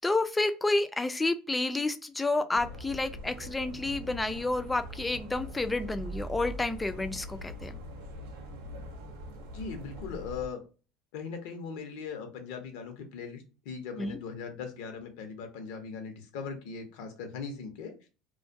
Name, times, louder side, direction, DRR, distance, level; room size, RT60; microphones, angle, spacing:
voice 1, 0.0-7.7 14.0-14.2, left 2 dB, 15° left, 10 dB, 0.3 m, -30 dB
sound 1, 2.5-10.5, equal, 90° right, 0.6 m, -42 dB
voice 2, 9.5-10.6 11.1-17.9, left 5 dB, 75° left, 6 dB, 0.7 m, -39 dB
2.2 x 2.1 x 2.6 m, 0.32 s
supercardioid pair, 100°, 0 cm